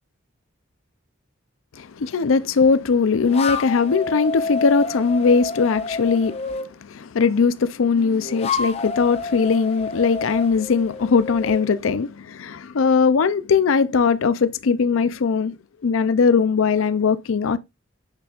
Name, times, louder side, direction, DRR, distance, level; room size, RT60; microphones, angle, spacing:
voice 1, 1.8-15.5 15.8-17.6, left 5 dB, 90° left, 0.5 m, -20 dB
sound 1, 3.2-6.7 7.9-11.7, left 4 dB, 30° left, 0.7 m, -29 dB
8.3 x 6.3 x 2.4 m
head